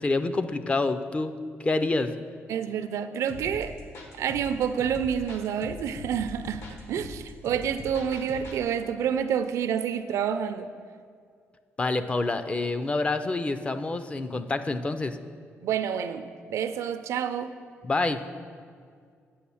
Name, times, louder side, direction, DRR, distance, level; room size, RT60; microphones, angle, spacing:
voice 1, 0.0-1.3 1.6-2.1 11.8-15.2 17.8-18.2, left 3 dB, 25° left, 10 dB, 0.4 m, -27 dB
voice 2, 2.5-3.7 4.1-10.7 15.6-17.5, right 8 dB, 85° right, 10 dB, 0.5 m, -28 dB
sound 1, 3.3-8.6, left 1 dB, 65° left, 1.4 m, -42 dB
8.5 x 6.1 x 7.1 m, 2.1 s
cardioid pair, 130°, 5 cm